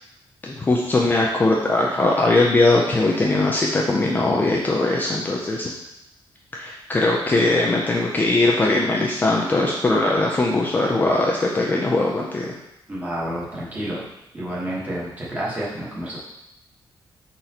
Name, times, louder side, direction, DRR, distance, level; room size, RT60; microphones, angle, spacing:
voice 1, 0.4-5.7 6.5-12.5, left 2 dB, 20° left, -2 dB, 0.4 m, -20 dB
voice 2, 12.9-16.2, right 1 dB, 15° right, -6 dB, 1.1 m, -30 dB
4.5 x 3.9 x 2.8 m, 0.87 s
wide cardioid pair, 175°, 9 cm